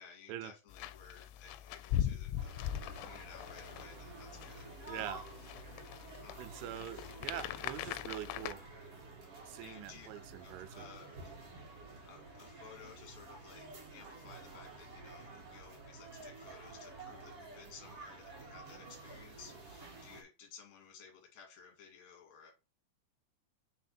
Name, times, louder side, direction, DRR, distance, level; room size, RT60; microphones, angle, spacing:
voice 1, 0.0-2.6 3.0-4.8 6.2-6.4 9.6-11.4 12.0-22.5, left 6 dB, 45° left, 2.8 m, -56 dB
sound 1, 0.7-8.5, left 11 dB, 85° left, 2.9 m, -41 dB
sound 2, 2.4-20.2, right 3 dB, 70° right, 1.4 m, -51 dB
voice 2, 4.9-5.2 6.2-8.6 9.5-10.9, right 12 dB, 85° right, 3.2 m, -44 dB
6.4 x 4.2 x 4.3 m
omnidirectional pair, 5.5 m